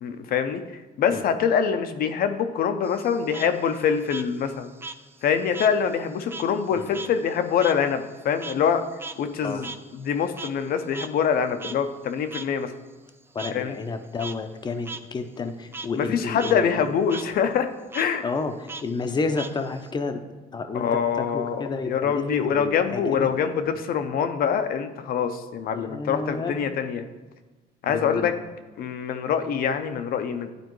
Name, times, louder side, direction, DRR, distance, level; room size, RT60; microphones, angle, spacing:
voice 1, 0.0-0.6 1.0-4.7 5.2-8.8 9.2-12.7 13.5-13.8 15.9-18.2 20.7-27.0 27.8-28.3 28.8-30.5, left 7 dB, 60° left, 9 dB, 0.7 m, -25 dB
Frog, 2.8-5.8 6.1-10.7 10.9-11.1 11.6-11.7 12.3-12.4 13.4-13.5 14.0-14.3 14.8-15.0 15.4-15.9 16.3-16.5 16.8-17.3 17.9-18.1 18.7-19.9, right 3 dB, 15° right, 0.3 m, -38 dB
voice 2, 13.3-16.7 18.2-20.2 20.5-23.3 25.7-26.6 27.9-28.3, left 3 dB, 25° left, 7 dB, 0.7 m, -31 dB
10.5 x 4.3 x 3.1 m, 1.3 s
cardioid pair, 110°, 17 cm